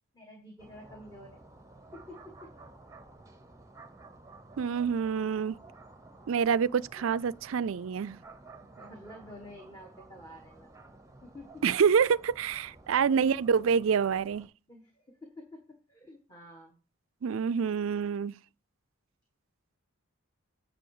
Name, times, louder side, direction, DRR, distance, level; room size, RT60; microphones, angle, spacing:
voice 1, 0.1-1.4 1.9-2.5 8.6-10.7 11.2-11.6 14.7-15.6 15.9-16.8, left 1 dB, 20° left, 1.6 m, -49 dB
sound 1, 0.6-14.5, right 2 dB, 15° right, 0.9 m, -53 dB
voice 2, 4.6-5.6 6.3-8.2 11.6-14.5 17.2-18.4, right 6 dB, 75° right, 0.4 m, -27 dB
9.2 x 6.6 x 4.9 m
head